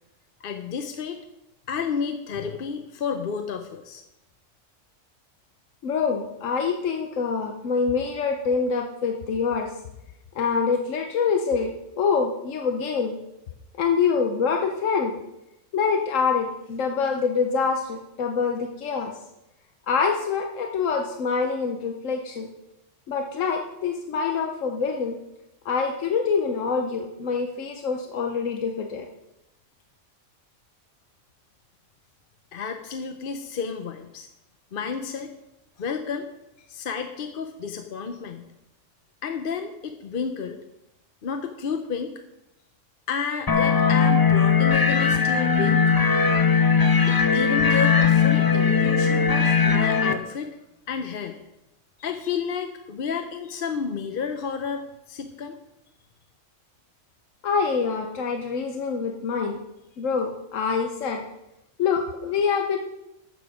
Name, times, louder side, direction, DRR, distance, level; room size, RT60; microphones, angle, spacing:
voice 1, 0.4-1.2 1.7-4.0 32.5-34.3 34.7-35.3 35.8-36.3 36.7-38.5 39.2-40.6 41.2-42.1 43.1-45.9 47.0-50.5 50.9-51.4 52.0-55.6, left 6 dB, 50° left, 6 dB, 0.8 m, -31 dB
voice 2, 5.8-9.7 10.3-13.2 13.8-15.2 15.7-19.2 19.9-22.5 23.1-25.2 25.6-29.1 57.4-59.6 60.0-61.2 61.8-62.8, left 5 dB, 90° left, 4 dB, 1.2 m, -25 dB
sound 1, 43.5-50.1, left 6 dB, 30° left, 0.4 m, -19 dB
12.5 x 7.2 x 5.0 m, 0.91 s
omnidirectional pair, 1.3 m